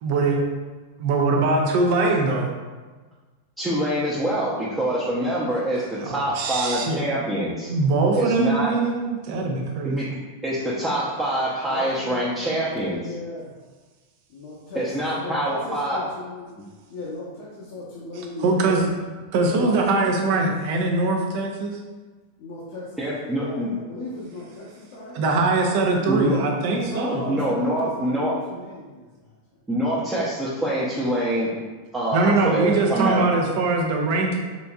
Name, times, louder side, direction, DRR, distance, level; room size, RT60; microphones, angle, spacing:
voice 1, 0.0-0.4 1.0-2.5 6.0-7.0 7.7-10.0 18.4-18.8 19.3-21.8 25.1-27.6 32.1-34.4, right 3 dB, 60° right, 1 dB, 0.6 m, -22 dB
voice 2, 3.6-7.7 8.2-8.7 9.8-10.2 10.4-13.0 14.7-16.1 23.0-23.7 26.1-26.4 27.3-28.4 29.7-31.5 31.9-33.2, right 1 dB, 10° right, -8 dB, 0.6 m, -25 dB
voice 3, 11.7-13.5 14.3-16.5 16.9-19.0 19.5-20.5 22.4-25.5 26.8-29.3, left 2 dB, 65° left, -7 dB, 0.7 m, -36 dB
3.9 x 2.7 x 2.3 m, 1.3 s
hypercardioid pair, 115°, 0 cm